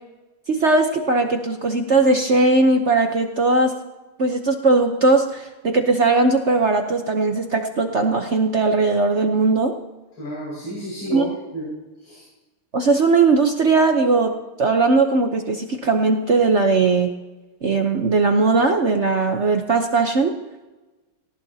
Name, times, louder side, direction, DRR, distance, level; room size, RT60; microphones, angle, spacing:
voice 1, 0.5-3.7 4.2-9.7 11.1-11.3 12.7-17.1 17.6-20.3, right 3 dB, 55° right, 4 dB, 0.8 m, -19 dB
voice 2, 10.2-11.7 12.0-12.2, equal, 60° left, -7 dB, 6.6 m, -31 dB
18.5 x 18.5 x 2.8 m, 1.1 s
omnidirectional pair, 2.4 m